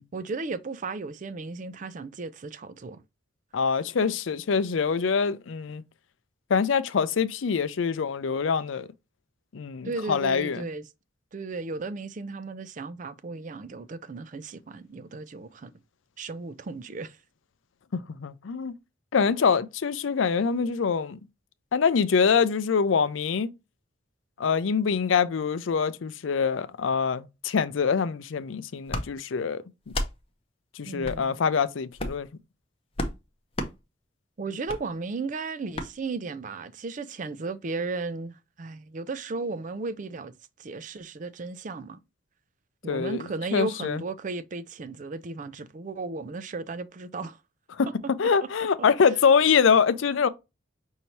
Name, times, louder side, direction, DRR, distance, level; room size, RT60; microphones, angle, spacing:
voice 1, 0.1-3.0 9.8-10.9 11.3-15.7 16.2-17.2 30.8-31.4 34.4-40.3 40.6-42.0 42.8-47.4, right 3 dB, 40° right, 0.4 m, -35 dB
voice 2, 3.5-5.8 6.5-8.9 9.5-10.7 17.9-18.7 19.1-21.2 21.7-23.5 24.4-29.6 30.8-32.3 42.9-43.2 43.5-44.0 47.7-47.9 48.2-50.3, left 6 dB, 80° left, 0.5 m, -24 dB
sound 1, 28.9-29.1 29.9-30.1 31.0-31.2 31.9-32.3 33.0-33.2 33.5-33.7 34.7-34.8 35.7-35.9, left 1 dB, 30° left, 0.6 m, -31 dB
5.6 x 2.7 x 3.1 m
head